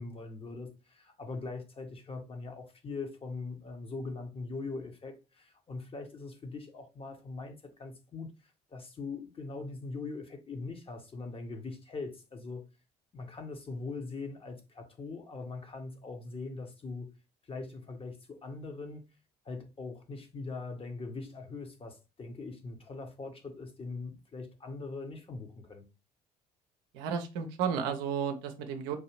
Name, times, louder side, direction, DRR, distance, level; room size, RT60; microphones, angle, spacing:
voice 1, 0.0-12.6 13.1-17.1 17.4-19.0 19.4-25.8, left 3 dB, 30° left, 0.9 m, -41 dB
voice 2, 26.9-29.0, right 7 dB, 60° right, 0.6 m, -33 dB
4.8 x 2.7 x 2.9 m
figure-of-eight pair, 50°, 20 cm